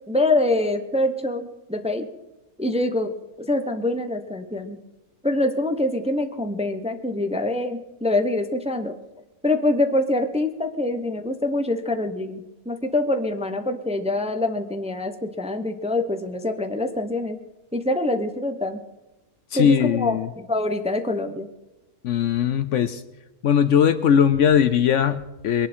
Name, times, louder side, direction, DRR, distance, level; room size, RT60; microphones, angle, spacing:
voice 1, 0.1-2.1 2.6-3.1 3.4-4.8 5.2-9.0 9.4-17.4 17.7-18.8 19.5-21.5, left 2 dB, 5° right, 7 dB, 0.7 m, -25 dB
voice 2, 19.5-20.3 22.0-23.0 23.4-25.7, left 8 dB, 65° left, 13 dB, 0.9 m, -19 dB
22.5 x 11.0 x 4.4 m, 1.0 s
omnidirectional pair, 1.5 m